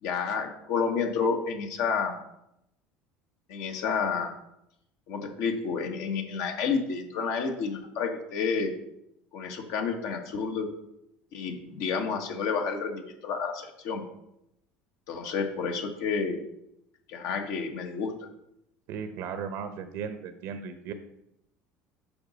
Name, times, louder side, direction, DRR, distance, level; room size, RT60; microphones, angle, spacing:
voice 1, 0.0-2.2 3.5-4.3 5.1-8.7 9.3-10.7 11.3-14.0 15.1-16.4 17.1-18.1, left 5 dB, 70° left, 4 dB, 1.3 m, -30 dB
voice 2, 18.9-20.9, right 6 dB, 70° right, 9 dB, 0.8 m, -36 dB
7.0 x 5.2 x 5.0 m, 0.82 s
supercardioid pair, 110°, 5 cm